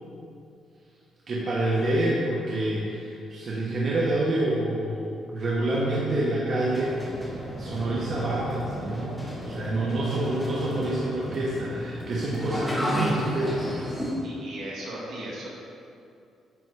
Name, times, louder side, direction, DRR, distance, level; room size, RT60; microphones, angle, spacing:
voice 1, 1.3-7.0 7.5-14.1, right 1 dB, 50° right, -5 dB, 1.2 m, -27 dB
sound 1, 6.6-14.1, equal, ahead, 1.6 m, -33 dB
voice 2, 14.2-15.5, right 1 dB, 70° right, -4 dB, 1.9 m, -37 dB
9.5 x 3.9 x 4.8 m, 2.5 s
cardioid pair, 90°, 0 cm